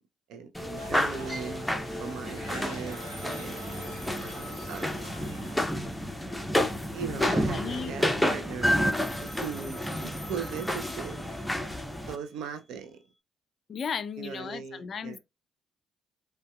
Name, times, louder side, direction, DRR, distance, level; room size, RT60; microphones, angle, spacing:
voice 1, 0.3-1.6 2.0-3.7 4.7-5.1 6.9-8.8 9.2-11.4 12.1-13.0 14.2-15.2, right 6 dB, 65° right, 0.5 m, -39 dB
sound 1, 0.6-12.2, equal, ahead, 0.7 m, -30 dB
sound 2, 0.8-6.0, right 1 dB, 85° right, 0.8 m, -47 dB
Telephone, 2.9-5.7 8.9-11.7, equal, 20° right, 1.1 m, -46 dB
voice 2, 7.1-8.0 13.7-15.2, left 6 dB, 50° left, 0.4 m, -35 dB
5.0 x 2.2 x 2.3 m
figure-of-eight pair, 45°, 0 cm